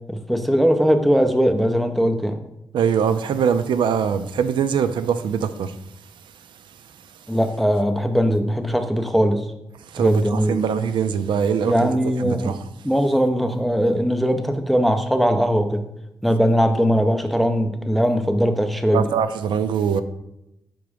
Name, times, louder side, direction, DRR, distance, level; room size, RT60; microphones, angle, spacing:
voice 1, 0.1-2.4 7.3-9.4 10.0-10.6 11.6-12.5 12.8-15.8 16.2-19.1, equal, ahead, 0.4 m, -20 dB
voice 2, 2.7-5.7 9.9-11.9 12.2-12.6 18.9-20.0, right 7 dB, 85° right, 0.4 m, -22 dB
6.1 x 3.6 x 5.0 m
wide cardioid pair, 160°, 8 cm